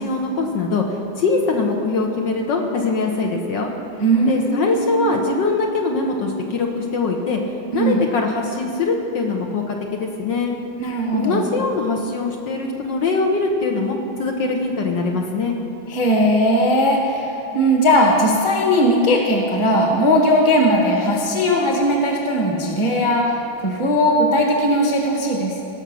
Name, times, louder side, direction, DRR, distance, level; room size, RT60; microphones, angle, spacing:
voice 1, 0.0-3.7 4.3-7.4 7.7-10.5 11.1-15.6, left 3 dB, 65° left, 1 dB, 1.5 m, -22 dB
voice 2, 4.0-5.3 7.7-8.0 10.8-11.5 15.9-17.3 17.5-25.6, equal, 15° left, 0 dB, 1.1 m, -18 dB
18.0 x 6.1 x 6.1 m, 2.9 s
omnidirectional pair, 2.3 m